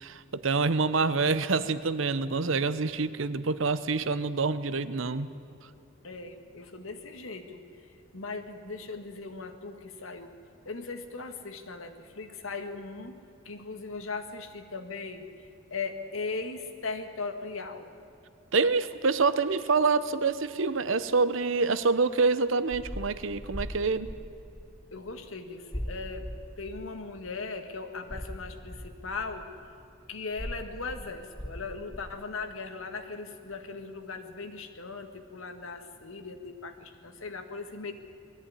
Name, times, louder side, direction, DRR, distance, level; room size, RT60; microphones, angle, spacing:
voice 1, 0.0-5.3 18.5-24.1, right 4 dB, 75° right, 14 dB, 0.8 m, -26 dB
voice 2, 6.0-10.3 10.7-13.2 13.5-17.9 24.9-26.3 26.6-29.5 30.1-37.9, left 4 dB, 85° left, 7 dB, 1.7 m, -38 dB
sound 1, 22.7-25.3 25.7-27.5 28.1-32.2, equal, 5° left, 0.6 m, -41 dB
20.5 x 14.5 x 9.8 m, 2.5 s
head